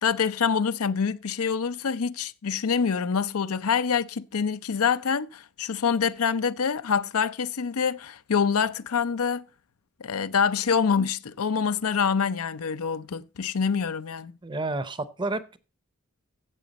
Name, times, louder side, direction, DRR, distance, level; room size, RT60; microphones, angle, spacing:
voice 1, 0.0-9.5 10.0-14.3, left 6 dB, 75° left, 0.6 m, -26 dB
voice 2, 14.4-15.6, right 2 dB, 20° right, 0.7 m, -30 dB
13.0 x 7.8 x 4.1 m
head